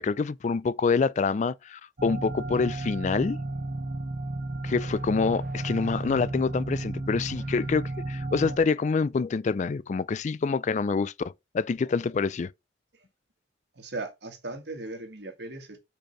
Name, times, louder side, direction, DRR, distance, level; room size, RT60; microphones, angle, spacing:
voice 1, 0.0-3.4 4.6-12.5, left 4 dB, 40° left, 0.3 m, -26 dB
sound 1, 2.0-8.6, right 2 dB, 45° right, 0.7 m, -33 dB
voice 2, 13.8-15.8, right 2 dB, 65° right, 1.8 m, -37 dB
5.1 x 4.5 x 5.3 m
head